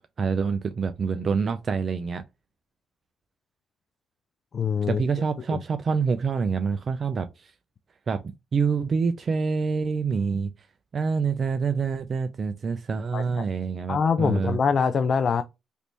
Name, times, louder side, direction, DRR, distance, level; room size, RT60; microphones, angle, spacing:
voice 1, 0.2-2.2 4.9-7.5 8.1-10.5 10.9-14.6, right 5 dB, 45° right, 0.4 m, -26 dB
voice 2, 4.5-5.0 5.5-5.6 13.1-13.5 13.9-15.4, left 6 dB, 50° left, 0.3 m, -24 dB
3.3 x 2.6 x 2.9 m
cardioid pair, 90°, 0 cm